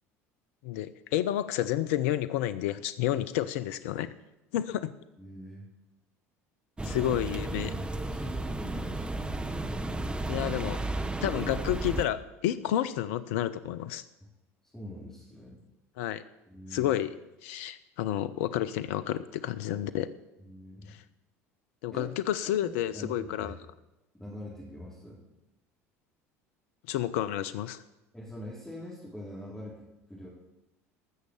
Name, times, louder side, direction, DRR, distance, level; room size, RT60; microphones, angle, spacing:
voice 1, 0.6-4.1 4.5-4.9 6.9-7.7 10.3-10.8 11.2-14.0 16.0-16.2 16.7-17.1 17.4-20.1 20.9-21.0 21.8-23.5 26.9-27.8, left 12 dB, 70° left, 14 dB, 0.6 m, -30 dB
voice 2, 5.2-5.7 6.8-7.7 8.1-9.4 14.7-15.6 16.5-17.0 20.4-20.9 21.9-22.1 22.6-23.6 24.2-25.2 28.1-30.3, left 1 dB, 10° left, -7 dB, 3.9 m, -44 dB
sound 1, 6.8-12.1, right 2 dB, 10° right, 1.0 m, -33 dB
14.5 x 6.6 x 7.0 m, 0.96 s
hypercardioid pair, 70°, 8 cm